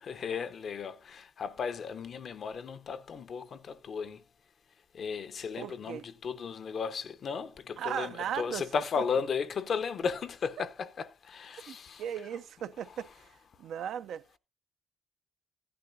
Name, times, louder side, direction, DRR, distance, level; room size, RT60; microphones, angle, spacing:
voice 1, 0.0-4.2 4.9-12.0, left 6 dB, 55° left, 0.7 m, -35 dB
voice 2, 5.6-6.1 7.8-8.8 11.7-13.3 13.6-14.2, right 9 dB, 75° right, 0.5 m, -37 dB
15.0 x 10.5 x 2.6 m
cardioid pair, 90°, 0 cm